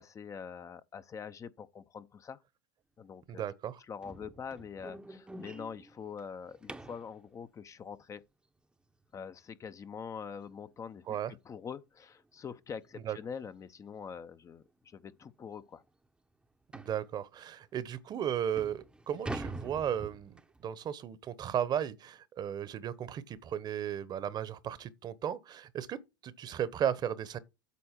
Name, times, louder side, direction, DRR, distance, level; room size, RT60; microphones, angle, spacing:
voice 1, 0.0-2.4 3.0-3.4 3.8-8.2 9.1-15.8, left 6 dB, 30° left, 0.6 m, -44 dB
voice 2, 3.3-3.8 11.1-11.3 13.0-13.2 16.7-20.3 20.6-26.0 26.2-27.4, right 9 dB, 40° right, 1.0 m, -35 dB
sound 1, 4.0-7.1 9.9-10.0 10.5-10.7 11.0-11.1 11.6-11.7 12.8-13.0 13.4-13.5 14.2-14.3 14.6-14.7 15.2-15.3 16.7-17.0 17.8-17.9 18.3-20.6, right 2 dB, 10° right, 0.8 m, -44 dB
8.4 x 4.2 x 5.8 m
hypercardioid pair, 85°, 11 cm